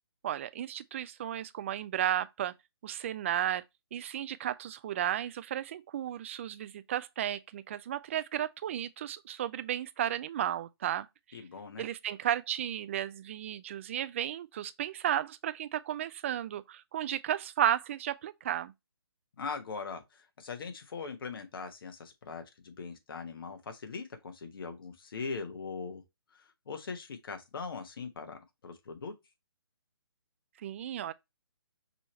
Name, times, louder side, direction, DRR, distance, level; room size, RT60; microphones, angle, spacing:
voice 1, 0.2-2.5 2.8-3.6 3.9-11.1 11.8-18.7 30.6-31.1, right 11 dB, 30° right, 0.3 m, -33 dB
voice 2, 11.3-11.8 19.4-26.0 26.3-29.1, left 5 dB, 60° left, 1.2 m, -41 dB
5.4 x 3.0 x 3.0 m
hypercardioid pair, 150°, 13 cm